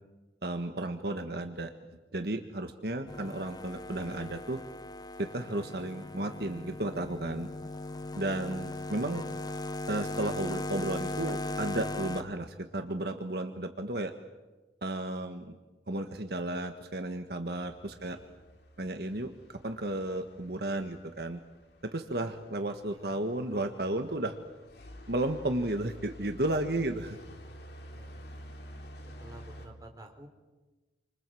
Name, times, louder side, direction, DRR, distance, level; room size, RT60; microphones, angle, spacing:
voice 1, 0.4-1.7 2.1-4.6 5.2-7.5 8.2-9.2 9.9-14.1 14.8-15.6 15.9-18.2 18.8-19.3 19.6-21.4 21.8-24.4 25.1-27.2, right 1 dB, 60° right, 6 dB, 1.5 m, -33 dB
sound 1, 3.1-12.2, left 2 dB, 20° left, 1.0 m, -38 dB
voice 2, 8.0-8.6 18.0-18.3 22.9-23.2 27.9-28.5 29.2-30.3, right 1 dB, 20° right, 3 dB, 3.9 m, -52 dB
sound 2, 17.5-29.7, equal, 65° left, 3.3 m, -50 dB
29.0 x 25.5 x 7.8 m, 1.2 s
head